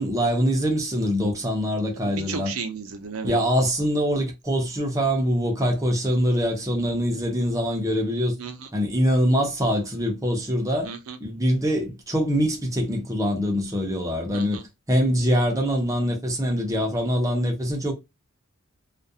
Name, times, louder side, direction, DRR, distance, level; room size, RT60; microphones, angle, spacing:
voice 1, 0.0-2.5 3.2-8.3 8.7-10.9 11.2-14.6 14.9-17.9, equal, 15° right, 0.6 m, -24 dB
voice 2, 2.0-3.3 8.4-8.7 10.8-11.2 14.3-14.6, right 5 dB, 70° right, 0.5 m, -34 dB
2.3 x 2.2 x 2.6 m
head